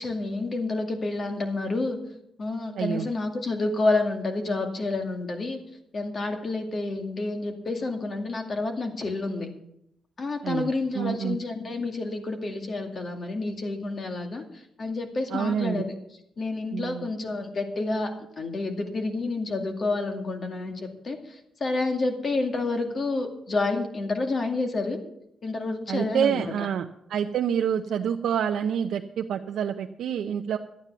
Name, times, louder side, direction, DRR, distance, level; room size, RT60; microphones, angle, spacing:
voice 1, 0.0-2.0 2.4-5.6 5.9-9.5 10.2-14.4 14.8-15.9 16.4-18.1 18.4-25.0 25.4-26.5, left 3 dB, 45° left, 4 dB, 2.3 m, -29 dB
voice 2, 2.7-3.1 10.4-11.4 15.3-15.8 16.7-17.1 25.9-30.6, right 8 dB, 80° right, 4 dB, 0.7 m, -27 dB
12.5 x 9.1 x 6.9 m, 0.77 s
cardioid pair, 110°, 0 cm